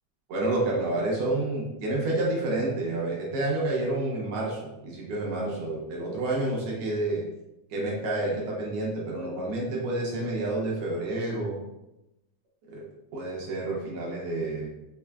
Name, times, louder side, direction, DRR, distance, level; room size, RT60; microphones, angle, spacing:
voice 1, 0.3-7.2 7.7-11.6 12.7-12.9 13.1-14.7, right 2 dB, 70° right, -3 dB, 1.5 m, -29 dB
5.7 x 2.3 x 2.3 m, 0.92 s
omnidirectional pair, 3.3 m